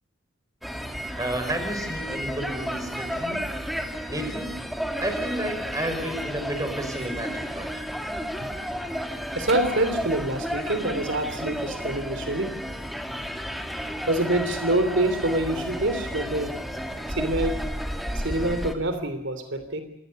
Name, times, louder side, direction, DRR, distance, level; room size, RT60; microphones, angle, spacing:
sound 1, 0.6-18.8, equal, ahead, 2.3 m, -32 dB
voice 1, 1.2-3.4 4.1-4.6 5.0-7.7, right 1 dB, 20° right, 7 dB, 5.3 m, -31 dB
voice 2, 9.3-12.6 14.1-16.5 17.2-17.6 18.1-19.8, right 1 dB, 65° right, 9 dB, 3.1 m, -26 dB
28.0 x 20.0 x 6.6 m, 0.81 s
head